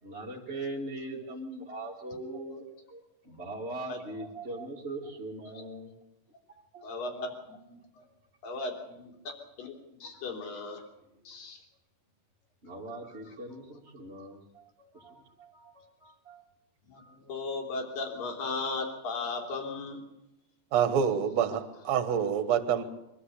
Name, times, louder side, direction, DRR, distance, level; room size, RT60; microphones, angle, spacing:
voice 1, 0.0-5.9 6.5-6.9 8.0-8.2 10.0-10.1 12.6-16.5 17.0-17.2, right 2 dB, 20° right, -5 dB, 2.2 m, -41 dB
voice 2, 6.8-8.0 8.4-9.1 9.6-10.8 11.2-11.6 16.9-20.0, left 3 dB, 80° left, 2 dB, 4.9 m, -36 dB
voice 3, 20.7-22.8, right 8 dB, 60° right, 10 dB, 2.5 m, -27 dB
24.0 x 14.0 x 8.4 m, 0.88 s
omnidirectional pair, 3.9 m